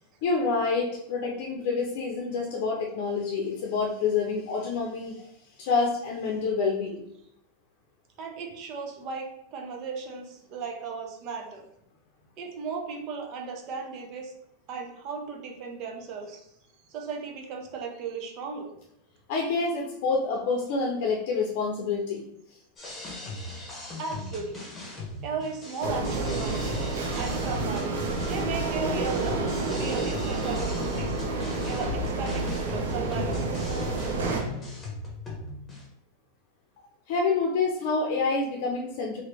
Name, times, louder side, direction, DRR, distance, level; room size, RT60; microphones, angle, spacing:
voice 1, 0.2-5.3 5.6-7.0 19.3-22.2 37.1-39.2, left 4 dB, 60° left, 0 dB, 0.6 m, -27 dB
voice 2, 8.2-11.6 12.4-14.3 14.7-16.5 16.9-18.7 23.7-24.6 25.2-26.7 27.1-27.9 28.3-29.4 29.7-31.2 31.6-33.6, right 5 dB, 45° right, 2 dB, 0.7 m, -36 dB
sound 1, 22.8-35.8, left 3 dB, 20° left, 1.2 m, -39 dB
sound 2, 25.8-34.4, right 3 dB, 90° right, 0.7 m, -29 dB
2.9 x 2.7 x 3.3 m, 0.74 s
supercardioid pair, 130°, 0 cm